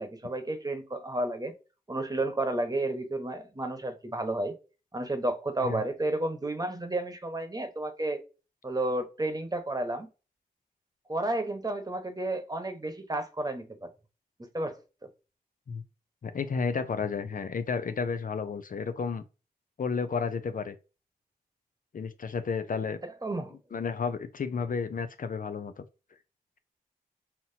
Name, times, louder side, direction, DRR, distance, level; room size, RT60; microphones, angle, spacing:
voice 1, 0.0-1.5 1.9-4.5 4.9-8.2 8.6-10.1 11.1-13.9 14.4-14.8 23.2-23.6, right 2 dB, 25° right, 1.1 m, -31 dB
voice 2, 16.2-19.2 19.8-20.7 21.9-23.0 23.7-25.8, left 5 dB, 60° left, 0.5 m, -32 dB
5.7 x 2.8 x 2.7 m
cardioid pair, 65°, 16 cm